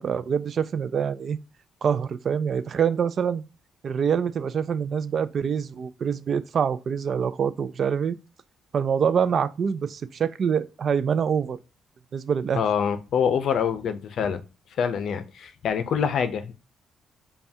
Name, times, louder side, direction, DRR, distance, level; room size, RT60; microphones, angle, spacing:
voice 1, 0.0-1.4 1.8-3.4 3.8-8.2 8.7-11.6 12.1-12.6, right 7 dB, 50° right, 0.3 m, -25 dB
voice 2, 12.5-14.4 14.8-16.5, left 7 dB, 65° left, 0.5 m, -25 dB
5.4 x 2.3 x 2.7 m
cardioid pair, 90°, 0 cm